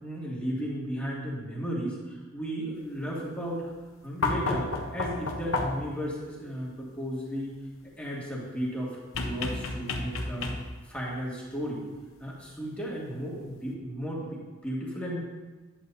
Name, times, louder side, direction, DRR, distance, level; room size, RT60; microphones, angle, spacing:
voice 1, 0.0-3.7 4.0-7.5 8.0-10.5 10.8-11.8 12.2-15.2, equal, 5° left, -6 dB, 2.0 m, -34 dB
sound 1, 4.2-6.0 9.1-10.9 12.4-12.5, left 3 dB, 80° left, 1.0 m, -31 dB
11.0 x 9.1 x 2.7 m, 1.2 s
head